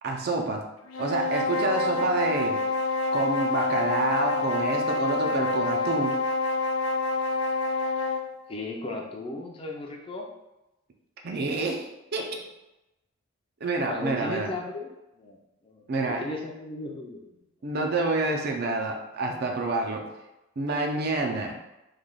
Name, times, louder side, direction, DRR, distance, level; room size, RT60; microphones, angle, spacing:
voice 1, 0.0-0.6 1.0-2.6 3.1-6.2 11.2-12.4 13.6-14.5 15.9-16.2 17.6-20.1 20.6-21.6, right 2 dB, 50° right, 2 dB, 0.5 m, -28 dB
sound 1, 0.9-8.3, left 3 dB, 85° left, 0.4 m, -27 dB
voice 2, 8.5-10.3 13.9-14.9 15.2-15.4 15.6-17.3 17.8-17.9, left 2 dB, 25° left, 0 dB, 0.4 m, -36 dB
3.2 x 2.2 x 3.8 m, 0.96 s
head